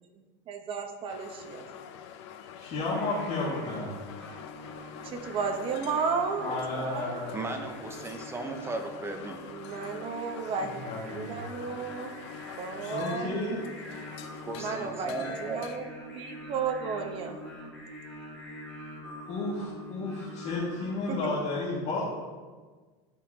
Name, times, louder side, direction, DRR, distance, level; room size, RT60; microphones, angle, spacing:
voice 1, 0.5-1.6 5.0-7.2 9.5-12.1 12.6-13.4 14.6-15.8 16.1-17.4 21.1-21.2, right 5 dB, 35° right, 4 dB, 1.0 m, -33 dB
sound 1, 1.1-15.8, left 9 dB, 80° left, 0.7 m, -46 dB
voice 2, 2.6-3.9 6.4-7.4 10.4-11.4 12.9-13.7 19.3-22.0, left 2 dB, 50° left, -7 dB, 2.1 m, -32 dB
Singing, 2.9-21.2, left 1 dB, 5° left, 2.4 m, -45 dB
voice 3, 7.3-9.4 14.4-15.6, right 2 dB, 15° right, 5 dB, 0.8 m, -36 dB
12.5 x 5.6 x 2.9 m, 1.4 s
supercardioid pair, 135°, 15 cm